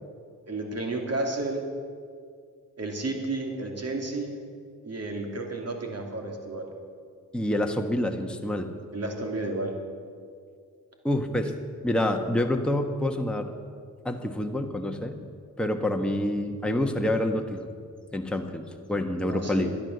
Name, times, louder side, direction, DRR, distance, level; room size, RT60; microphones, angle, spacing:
voice 1, 0.5-1.6 2.8-4.3 4.8-6.7 8.9-9.8 19.2-19.8, right 2 dB, 45° right, 2 dB, 2.7 m, -32 dB
voice 2, 7.3-8.7 11.0-11.5 11.8-13.5 14.0-15.2 15.6-17.7 18.1-18.6 18.9-19.7, left 1 dB, 5° left, 4 dB, 1.2 m, -27 dB
12.0 x 10.5 x 6.7 m, 2.1 s
supercardioid pair, 55°, 35 cm